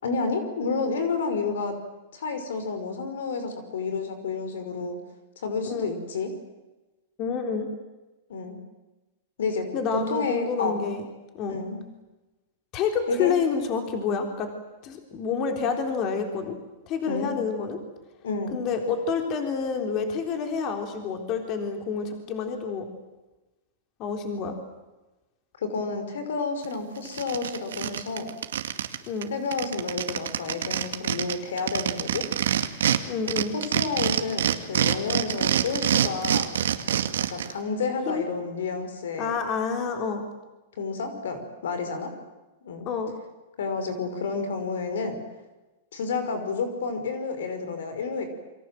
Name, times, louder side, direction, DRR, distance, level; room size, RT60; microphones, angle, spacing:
voice 1, 0.0-1.7 2.1-5.0 5.4-6.3 8.3-8.6 9.4-9.7 9.9-10.9 11.5-11.8 13.1-13.3 17.1-17.3 18.2-18.6 25.6-28.3 29.3-32.2 33.5-36.5 37.3-39.3 40.8-42.1 42.6-42.9 43.6-45.2 45.9-48.3, left 4 dB, 85° left, 8 dB, 5.8 m, -30 dB
voice 2, 7.2-7.7 9.7-11.0 11.3-11.6 12.7-14.5 14.8-16.6 16.9-17.8 18.5-22.9 24.0-24.6 29.1-29.3 33.1-33.5 38.1-38.2 39.2-40.2 42.9-43.1, left 5 dB, 35° left, 5 dB, 3.8 m, -28 dB
sound 1, 26.6-26.7 27.0-29.0 29.2-29.3 29.5-33.0 33.3-37.5, right 9 dB, 90° right, 2.2 m, -25 dB
28.5 x 24.0 x 7.8 m, 1.1 s
supercardioid pair, 145°, 0 cm